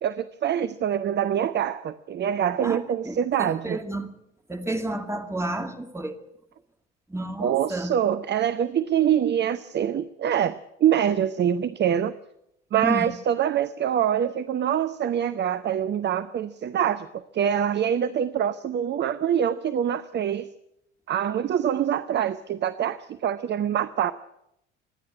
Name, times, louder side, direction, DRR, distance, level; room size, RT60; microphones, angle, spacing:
voice 1, 0.0-3.8 7.4-12.1 12.7-20.5 21.1-24.1, right 9 dB, 30° right, 0.8 m, -25 dB
voice 2, 2.6-4.1 4.5-6.2 7.1-7.9 12.8-13.1, right 1 dB, 10° right, 2.4 m, -31 dB
26.0 x 10.5 x 9.7 m
figure-of-eight pair, 60°, 35 cm